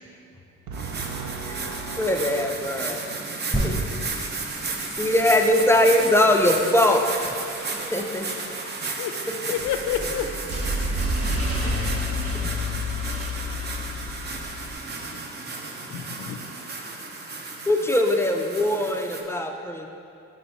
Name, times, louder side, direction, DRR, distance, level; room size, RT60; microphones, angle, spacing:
sound 1, 0.7-19.2, right 3 dB, 35° right, 0.6 m, -33 dB
voice 1, 0.7-3.0, right 4 dB, 75° right, 2 dB, 0.7 m, -37 dB
voice 2, 2.0-3.0 3.6-4.1 5.0-7.3 7.7-8.3 11.6-12.3 17.7-19.9, left 1 dB, 10° left, 3 dB, 0.3 m, -22 dB
sound 2, 3.5-7.1 7.7-7.8, right 1 dB, 15° right, 1.4 m, -32 dB
voice 3, 8.5-9.1 9.5-10.3 15.1-15.2 15.9-16.4, left 10 dB, 75° left, 6 dB, 0.5 m, -30 dB
sound 3, 9.6-14.7, left 1 dB, 50° right, 1.0 m, -29 dB
5.4 x 4.1 x 4.3 m, 2.5 s
cardioid pair, 90°, 30 cm